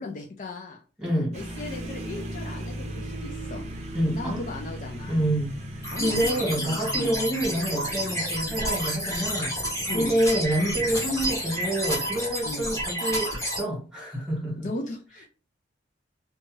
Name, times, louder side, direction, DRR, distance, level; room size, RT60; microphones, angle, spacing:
voice 1, 0.0-0.8 1.3-3.6 4.1-5.3 5.9-7.2 9.9-10.2 12.4-12.7 14.6-15.2, left 2 dB, 45° left, 0.4 m, -36 dB
voice 2, 1.0-1.3 3.9-4.4 5.0-5.5 6.0-9.6 9.9-14.7, right 1 dB, 5° right, 1.5 m, -27 dB
sound 1, 1.3-13.1, equal, 35° right, 0.6 m, -39 dB
sound 2, 5.8-13.6, right 1 dB, 15° left, 1.4 m, -30 dB
2.7 x 2.2 x 3.1 m
head